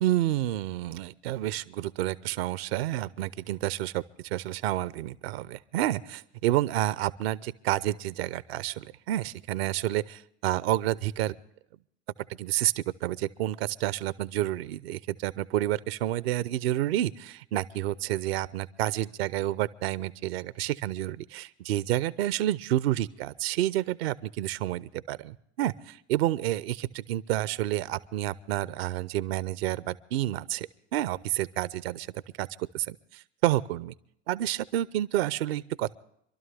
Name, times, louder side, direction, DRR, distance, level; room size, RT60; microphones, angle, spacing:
voice 1, 0.0-11.4 12.4-32.1 32.4-33.9 34.3-35.9, right 14 dB, 65° right, 19 dB, 0.7 m, -29 dB
26.0 x 12.5 x 3.4 m, 0.71 s
figure-of-eight pair, 70°, 34 cm